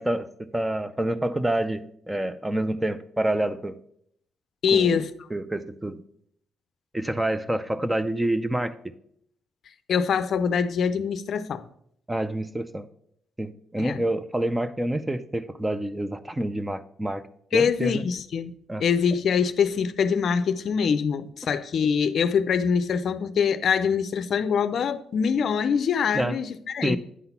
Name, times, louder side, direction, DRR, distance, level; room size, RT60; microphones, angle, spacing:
voice 1, 0.0-3.8 4.7-5.0 5.3-6.0 6.9-8.7 12.1-12.8 13.4-17.2 17.5-18.0 18.7-18.8 26.1-26.4 26.8-27.0, right 1 dB, 10° right, 0.5 m, -27 dB
voice 2, 4.6-5.1 9.9-11.6 13.8-14.0 17.5-18.5 18.8-27.0, left 6 dB, 60° left, 0.5 m, -24 dB
9.4 x 4.0 x 5.6 m
cardioid pair, 90°, 0 cm